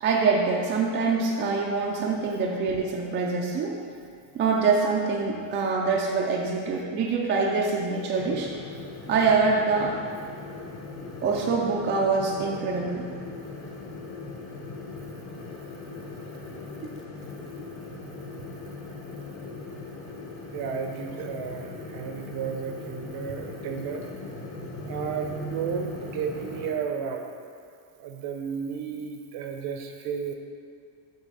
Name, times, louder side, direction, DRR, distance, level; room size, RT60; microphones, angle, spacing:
voice 1, 0.0-3.8 4.3-8.5 9.1-9.9 11.2-13.1, right 4 dB, 25° right, -1 dB, 0.4 m, -25 dB
sound 1, 8.2-26.7, left 2 dB, 25° left, 0.8 m, -39 dB
voice 2, 20.5-24.1 24.9-27.3 28.0-30.3, right 6 dB, 50° right, 4 dB, 0.7 m, -33 dB
8.2 x 3.4 x 5.4 m, 2.3 s
cardioid pair, 160°, 49 cm